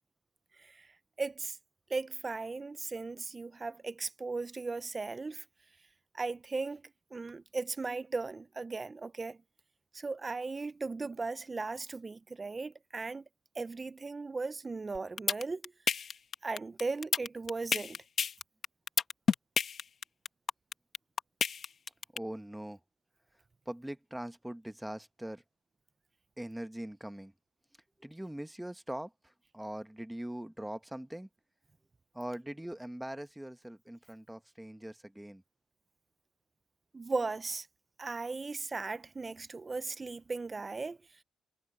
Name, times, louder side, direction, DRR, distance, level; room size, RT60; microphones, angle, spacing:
voice 1, 0.6-0.9 1.2-1.6 1.9-5.4 6.1-9.4 9.9-13.3 13.5-15.7 16.4-18.0 36.9-37.7 38.0-41.0, right 3 dB, 25° right, 0.8 m, -37 dB
sound 1, 14.9-22.2, left 6 dB, 50° left, 1.3 m, -29 dB
voice 2, 22.1-22.8 23.7-25.4 26.4-27.3 28.0-31.3 32.1-35.4, right 1 dB, 5° right, 1.2 m, -42 dB
cardioid pair, 90°, 0 cm